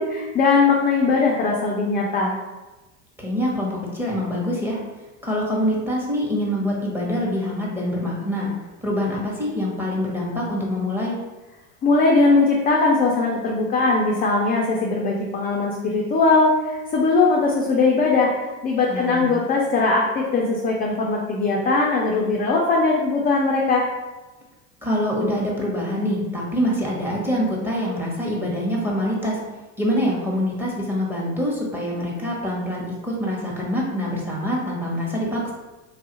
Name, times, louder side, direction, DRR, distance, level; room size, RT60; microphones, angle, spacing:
voice 1, 0.0-2.3 11.8-23.8, left 3 dB, 25° left, -1 dB, 0.4 m, -20 dB
voice 2, 3.2-4.8 5.2-8.5 8.8-11.2 18.9-19.3 24.8-29.4 29.8-35.5, equal, 5° right, -3 dB, 0.9 m, -25 dB
3.3 x 2.3 x 2.9 m, 1.1 s
supercardioid pair, 95°, 40 cm